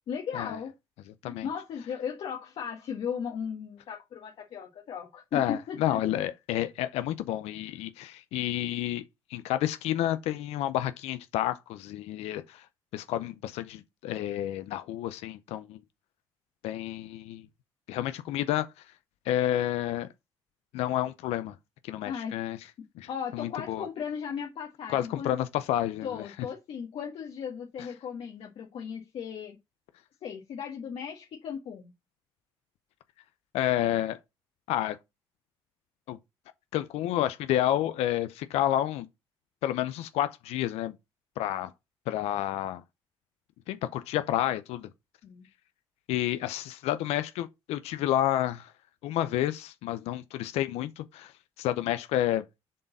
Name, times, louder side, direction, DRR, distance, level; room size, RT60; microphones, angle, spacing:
voice 1, 0.1-0.7 1.2-6.2 22.0-22.4 23.1-25.3 26.0-29.6 30.2-31.9 45.2-45.5, left 7 dB, 65° left, 1.5 m, -36 dB
voice 2, 5.3-9.0 9.3-12.7 12.9-15.8 16.6-17.4 17.9-18.7 19.3-20.1 20.7-21.5 21.8-22.6 23.0-23.9 24.9-26.2 33.5-34.2 34.7-35.0 36.1-36.2 36.7-39.1 39.6-40.9 41.4-41.7 42.1-42.8 43.7-44.9 46.1-48.7 49.0-51.3 51.6-52.4, left 13 dB, 90° left, 0.6 m, -30 dB
7.6 x 3.9 x 4.0 m
cardioid pair, 95°, 10 cm